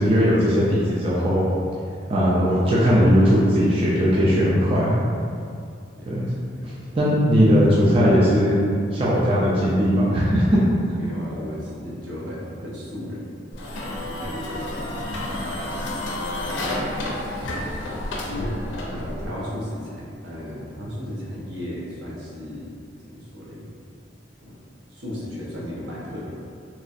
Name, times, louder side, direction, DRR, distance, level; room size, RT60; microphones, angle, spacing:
voice 1, 0.0-1.4 2.1-5.0 6.1-6.3 6.6-8.6 8.9-10.6, equal, 30° right, -7 dB, 0.4 m, -18 dB
voice 2, 5.9-6.5 7.7-7.8 11.0-13.3 13.8-16.7 17.4-17.7 18.2-18.6 18.9-22.7 23.1-23.7 24.4-24.5 24.9-26.3, left 1 dB, 75° right, -6 dB, 0.8 m, -35 dB
sound 1, 13.5-19.3, left 1 dB, 90° left, 0.5 m, -30 dB
2.9 x 2.4 x 2.6 m, 2.4 s
head